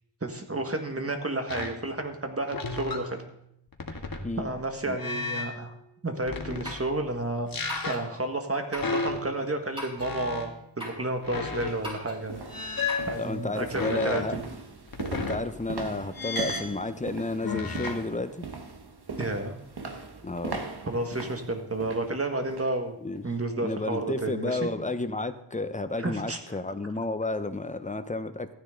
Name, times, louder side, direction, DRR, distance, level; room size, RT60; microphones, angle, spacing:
voice 1, 0.2-3.2 4.4-5.7 6.0-7.5 7.9-10.5 10.8-12.5 13.1-14.4 19.2-19.6 20.9-23.0 23.2-24.7 26.0-26.4, right 2 dB, 30° right, 5 dB, 1.8 m, -31 dB
sound 1, 1.5-1.8 2.5-4.7 5.0-5.6 6.2-7.0 7.5-8.2 8.7-9.5 10.0-10.6 11.2-11.9 12.5-14.3 14.9-15.8 16.1-16.8 17.4-18.1, left 3 dB, 50° left, 1.7 m, -34 dB
sound 2, 6.6-6.9 7.7-8.1 8.7-9.0 9.8-10.1 10.8-11.1 11.8-12.2 12.9-13.1, equal, 10° right, 5.1 m, -39 dB
sound 3, 10.8-10.9 11.5-22.8 23.1-23.4 23.8-23.9, right 4 dB, 60° right, 1.4 m, -40 dB
voice 2, 13.2-14.4 15.1-18.4 20.2-20.7 23.0-23.2 23.6-28.5, left 2 dB, 15° left, 10 dB, 0.9 m, -31 dB
14.5 x 9.9 x 3.9 m, 0.76 s
cardioid pair, 60°, 45 cm